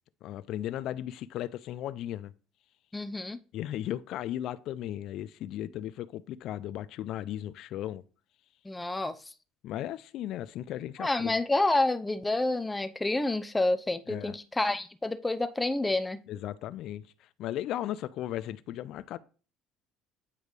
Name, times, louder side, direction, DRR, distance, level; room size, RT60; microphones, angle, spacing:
voice 1, 0.2-2.3 3.5-8.0 9.6-11.4 14.1-14.3 16.3-19.2, left 12 dB, 65° left, 0.3 m, -36 dB
voice 2, 2.9-3.4 8.6-9.2 11.0-16.2, left 2 dB, 15° left, 0.6 m, -28 dB
8.2 x 3.1 x 5.2 m
supercardioid pair, 85°, 0 cm